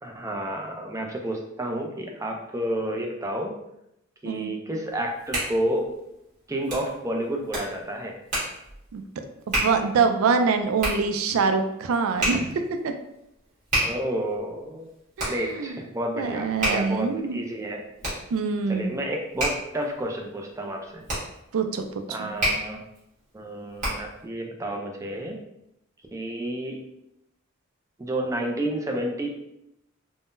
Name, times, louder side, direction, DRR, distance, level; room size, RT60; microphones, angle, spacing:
voice 1, 0.0-3.5 4.2-5.9 6.5-8.1 13.8-14.9 15.2-17.8 18.7-21.1 22.1-22.8 23.3-25.4 26.1-26.9 28.0-29.3, right 1 dB, 15° right, 1 dB, 0.4 m, -30 dB
Hands, 4.9-24.2, right 1 dB, 35° right, 1.4 m, -32 dB
voice 2, 9.6-12.9 15.2-15.8 16.2-17.4 18.3-19.0 21.5-21.8 22.2-22.3, right 5 dB, 85° right, 7 dB, 0.4 m, -24 dB
3.6 x 2.1 x 2.5 m, 0.82 s
head